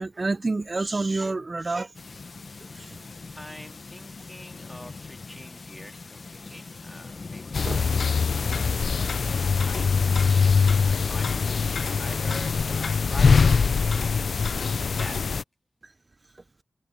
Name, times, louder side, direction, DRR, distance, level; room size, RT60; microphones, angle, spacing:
voice 1, 0.0-1.9 2.8-3.0, right 3 dB, 40° right, 0.6 m, -28 dB
sound 1, 1.9-11.9, left 4 dB, 60° left, 1.0 m, -42 dB
sound 2, 1.9-6.3 7.4-14.2, right 5 dB, 85° right, 1.3 m, -48 dB
voice 2, 3.3-9.9 10.3-11.3 11.9-15.4, left 1 dB, 10° left, 2.8 m, -46 dB
sound 3, 7.5-15.4, left 5 dB, 80° left, 0.4 m, -23 dB
wide cardioid pair, 60°, 0 cm